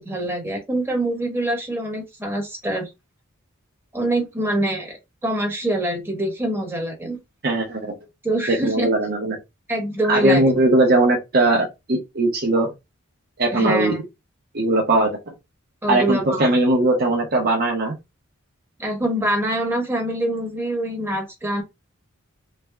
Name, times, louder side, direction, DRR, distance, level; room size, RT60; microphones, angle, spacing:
voice 1, 0.0-2.9 3.9-7.2 8.2-8.9 9.7-10.5 13.5-14.0 15.8-16.5 18.8-21.6, right 1 dB, 10° right, 1.2 m, -25 dB
voice 2, 7.4-7.9 8.5-9.4 10.1-12.7 13.4-13.9 14.5-15.1 15.9-17.9, right 2 dB, 45° right, 0.8 m, -19 dB
3.3 x 2.2 x 3.3 m
head